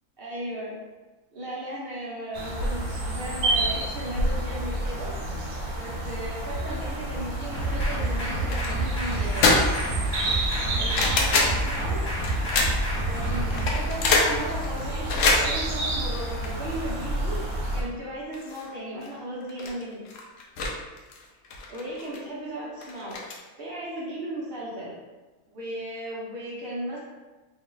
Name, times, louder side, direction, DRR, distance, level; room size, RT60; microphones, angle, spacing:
voice 1, 0.2-0.8 1.3-5.2 5.7-9.7 10.5-12.0 13.0-17.4 17.7-20.0 21.7-23.2 23.6-24.9 25.5-27.0, right 1 dB, 45° right, -6 dB, 0.9 m, -36 dB
sound 1, 2.3-17.8, right 1 dB, 75° right, 1.2 m, -30 dB
sound 2, 7.5-13.7, right 1 dB, 20° left, 0.8 m, -29 dB
sound 3, 8.5-8.7 9.1-9.9 10.3-11.6 12.2-13.0 13.5-16.9 17.3-17.4 17.8-17.9 18.3-18.7 19.0-19.1 19.4-20.7 21.0-22.2 22.8-23.4, left 3 dB, 70° left, 0.9 m, -25 dB
3.2 x 2.4 x 3.8 m, 1.2 s
omnidirectional pair, 1.6 m